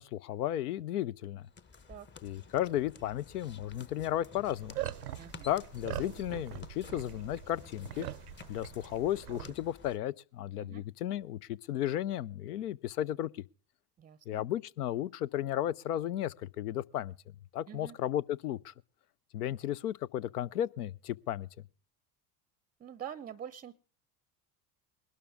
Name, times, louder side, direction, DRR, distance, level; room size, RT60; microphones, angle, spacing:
voice 1, 0.0-1.5 2.2-4.8 5.4-8.1 8.5-13.5 14.3-17.1 17.5-18.7 19.3-21.5, left 12 dB, 75° left, 0.6 m, -34 dB
sound 1, 1.4-10.0, left 5 dB, 25° left, 0.9 m, -52 dB
sound 2, 4.5-9.5, right 14 dB, 80° right, 0.6 m, -42 dB
voice 2, 5.2-5.5 10.6-10.8 14.0-14.4 17.7-18.0 22.8-23.8, right 9 dB, 20° right, 0.6 m, -45 dB
20.0 x 12.5 x 3.5 m
figure-of-eight pair, 70°, 46 cm